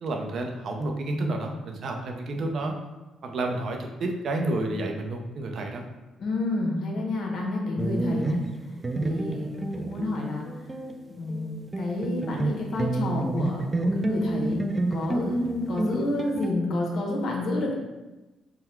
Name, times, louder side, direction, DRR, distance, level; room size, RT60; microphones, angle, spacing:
voice 1, 0.0-2.7 3.2-5.8, right 2 dB, 60° right, 3 dB, 0.6 m, -30 dB
voice 2, 6.2-8.4 9.0-10.5 11.1-14.6 14.9-17.7, left 2 dB, 65° left, -1 dB, 1.0 m, -29 dB
sound 1, 7.8-11.0 11.3-16.5, right 2 dB, 25° right, 0.3 m, -29 dB
3.7 x 2.2 x 4.4 m, 1.1 s
cardioid pair, 90°, 0 cm